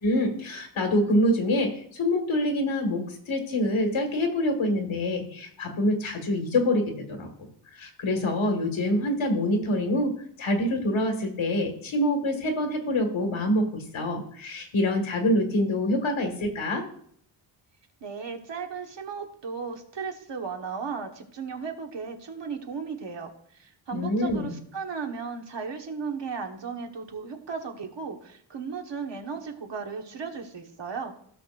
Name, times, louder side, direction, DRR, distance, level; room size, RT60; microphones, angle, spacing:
voice 1, 0.0-7.3 7.8-10.1 10.4-16.9 23.9-24.6, left 1 dB, 90° left, 4 dB, 2.0 m, -26 dB
voice 2, 18.0-31.1, right 5 dB, 65° right, 4 dB, 1.5 m, -35 dB
15.5 x 6.4 x 2.6 m, 0.64 s
wide cardioid pair, 105°, 46 cm